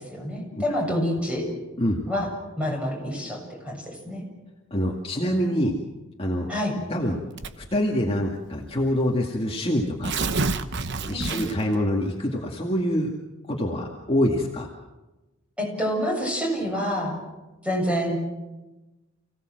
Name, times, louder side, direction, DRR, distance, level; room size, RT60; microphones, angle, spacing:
voice 1, 0.0-1.4 2.1-2.3 2.6-4.2 6.5-6.7 11.1-11.3 15.6-17.2 17.6-18.2, equal, 5° right, -1 dB, 7.7 m, -27 dB
voice 2, 4.7-5.7 6.2-6.5 6.9-7.2 7.6-10.2 11.0-13.1 13.5-14.7, equal, 30° left, 0 dB, 2.2 m, -25 dB
Tearing, 7.4-7.8 8.7-8.8 9.0-9.1 9.8-11.8, right 3 dB, 60° right, 1.1 m, -28 dB
29.5 x 17.0 x 7.7 m, 1.1 s
head